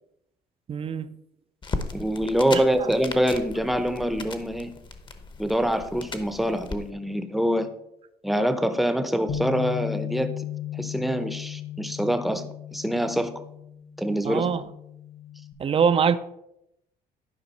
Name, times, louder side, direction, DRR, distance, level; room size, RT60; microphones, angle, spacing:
voice 1, 0.7-1.1 2.5-2.9 14.2-14.6 15.6-16.2, right 6 dB, 35° right, 0.5 m, -23 dB
sound 1, 1.6-6.8, left 3 dB, 30° left, 0.8 m, -37 dB
voice 2, 1.9-4.7 5.4-7.7 8.2-10.4 10.7-12.4 12.7-13.3 14.0-14.5, equal, ahead, 0.7 m, -25 dB
Bass guitar, 9.3-15.5, left 11 dB, 50° left, 1.0 m, -36 dB
11.0 x 5.1 x 4.1 m
cardioid pair, 110°, 17 cm